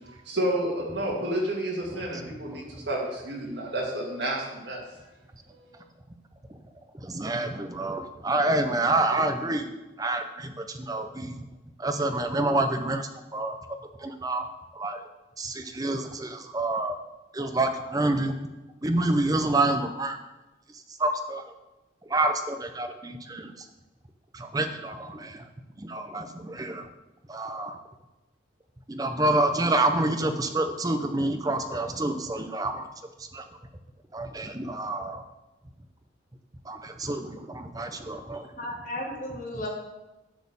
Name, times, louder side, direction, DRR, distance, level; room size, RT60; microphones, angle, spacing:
voice 1, 0.2-4.8 5.7-5.8, right 1 dB, 60° right, -2 dB, 2.3 m, -30 dB
voice 2, 7.0-9.7 10.0-11.4 11.8-13.6 14.0-14.5 14.8-15.0 15.4-17.0 17.3-18.3 18.8-20.2 21.0-21.4 22.1-23.5 24.3-25.4 25.8-26.9 27.3-27.8 28.9-32.8 33.3-33.4 34.1-35.2 36.7-38.5, right 2 dB, 20° right, 7 dB, 0.6 m, -28 dB
voice 3, 38.6-39.7, left 1 dB, 40° left, -3 dB, 1.7 m, -34 dB
10.0 x 4.3 x 7.1 m, 1.1 s
head